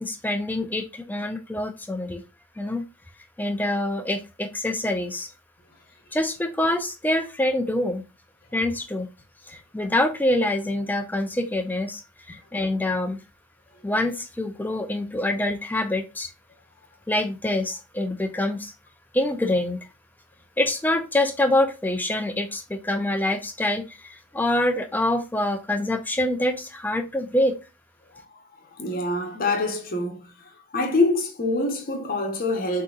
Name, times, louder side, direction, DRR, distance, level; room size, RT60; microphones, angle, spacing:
voice 1, 0.0-2.2 2.6-2.8 3.4-5.3 6.1-8.0 8.5-9.1 9.5-12.0 12.3-13.2 13.8-16.3 17.1-18.7 19.1-19.8 20.6-27.6, left 1 dB, 10° left, 0.4 m, -25 dB
voice 2, 28.8-30.3 30.7-32.8, left 2 dB, 40° left, 0.9 m, -25 dB
6.1 x 2.8 x 2.3 m
head